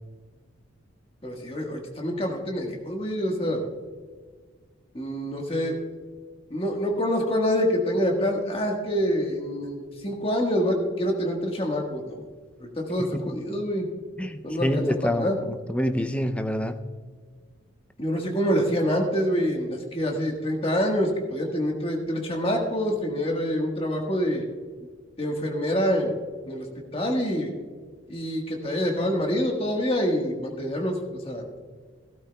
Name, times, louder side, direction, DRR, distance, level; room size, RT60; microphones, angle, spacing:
voice 1, 1.2-3.7 4.9-5.8 6.5-12.2 12.6-13.9 14.4-14.7 15.0-15.4 18.0-24.4 25.2-26.2 26.5-26.7 26.9-27.5 28.1-31.4, equal, 30° left, 1 dB, 1.5 m, -26 dB
voice 2, 13.0-13.4 14.2-16.8, left 1 dB, 5° left, 8 dB, 0.5 m, -27 dB
16.0 x 13.0 x 2.3 m, 1.5 s
head